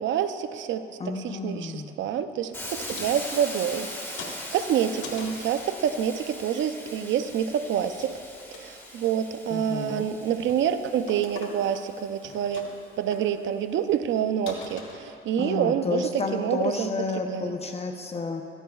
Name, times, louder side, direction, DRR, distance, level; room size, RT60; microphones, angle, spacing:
voice 1, 0.0-8.2 8.5-12.7 13.0-16.9 17.3-17.6, right 9 dB, 70° right, 10 dB, 0.6 m, -27 dB
voice 2, 1.0-2.0 9.5-10.1 15.4-18.4, left 3 dB, 30° left, 4 dB, 0.7 m, -31 dB
Hiss, 2.5-12.4, left 1 dB, 10° left, 1.6 m, -41 dB
sound 1, 2.8-3.9 4.2-5.5 6.7-7.4 7.7-8.1 8.4-9.1 9.6-9.9 10.3-10.6 11.1-11.9 12.1-12.9 13.1-13.2 13.8-13.9 14.1-14.2 14.5-15.4, left 4 dB, 80° left, 1.4 m, -43 dB
15.0 x 13.5 x 2.3 m, 2.5 s
cardioid pair, 90°, 20 cm